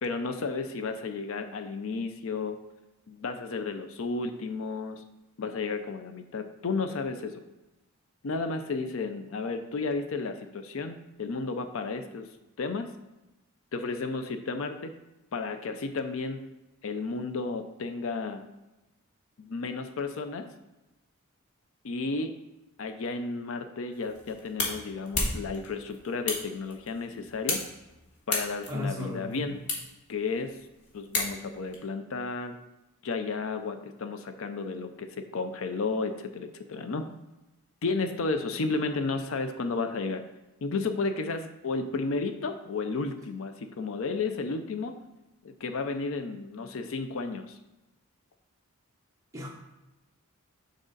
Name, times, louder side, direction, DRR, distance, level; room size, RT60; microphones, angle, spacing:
voice 1, 0.0-2.6 3.1-5.0 5.4-7.4 8.2-12.3 12.6-12.9 13.7-14.9 15.3-16.5 16.8-18.4 19.4-20.5 21.8-22.4 22.8-27.6 28.3-29.6 30.1-30.6 30.9-32.6 33.0-37.1 37.8-40.2 40.6-45.0 45.4-47.6, left 4 dB, 65° left, 8 dB, 0.5 m, -33 dB
sound 1, 23.9-31.7, left 2 dB, 90° left, 1.6 m, -35 dB
voice 2, 28.7-29.5 49.3-49.5, left 2 dB, 15° right, -2 dB, 1.2 m, -34 dB
6.2 x 5.3 x 3.9 m, 1.0 s
head